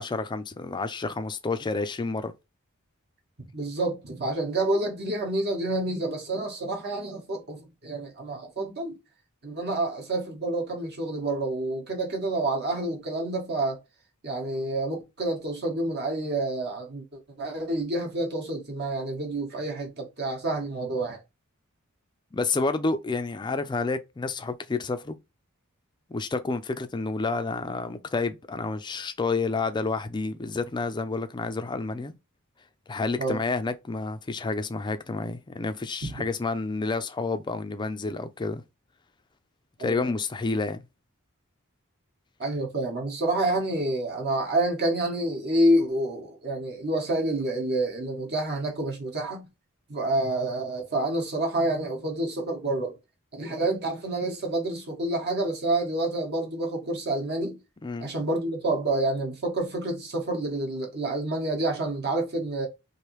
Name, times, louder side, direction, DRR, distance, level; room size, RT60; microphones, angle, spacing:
voice 1, 0.0-2.3 22.3-25.1 26.1-32.1 32.9-38.6 39.8-40.8 57.8-58.1, left 3 dB, 20° left, 0.4 m, -29 dB
voice 2, 3.5-9.0 9.4-13.8 14.2-21.2 33.2-33.4 36.0-36.1 39.8-40.1 42.4-49.5 49.9-52.9 53.3-57.6 58.0-62.7, right 2 dB, 50° right, 1.0 m, -28 dB
3.2 x 2.6 x 3.0 m
head